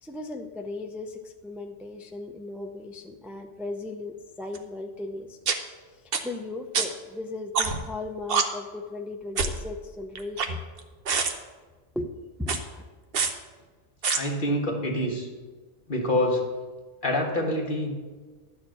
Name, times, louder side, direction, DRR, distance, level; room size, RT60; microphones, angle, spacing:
voice 1, 0.0-5.4 5.9-10.6 11.9-12.9, left 2 dB, ahead, 4 dB, 0.3 m, -37 dB
sound 1, 4.5-4.6 5.5-5.6 6.1-6.2 6.7-6.9 7.5-7.9 8.3-8.4 9.4-9.6 10.2-10.8 11.1-11.3 12.4-12.6 13.1-13.3 14.0-14.2, right 5 dB, 60° right, 1.0 m, -25 dB
voice 2, 14.1-15.3 15.9-16.4 17.0-17.9, left 1 dB, 45° left, -1 dB, 1.8 m, -26 dB
11.5 x 4.4 x 7.6 m, 1.3 s
omnidirectional pair, 1.2 m